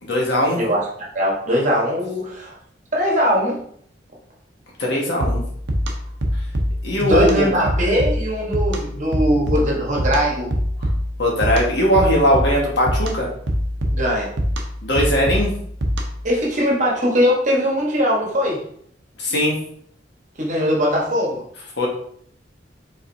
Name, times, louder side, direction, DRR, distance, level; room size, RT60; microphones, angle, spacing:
voice 1, 0.0-0.6 4.8-5.4 6.8-7.5 11.2-13.3 14.8-15.5 19.2-19.6 21.8-21.9, equal, 70° left, -2 dB, 1.5 m, -19 dB
voice 2, 0.6-2.6 2.9-3.6 7.0-10.6 13.9-14.3 16.2-18.6 20.4-21.4, equal, 45° right, -2 dB, 1.3 m, -20 dB
sound 1, 5.2-16.3, equal, 75° right, 0.8 m, -24 dB
4.9 x 3.9 x 2.7 m, 0.64 s
head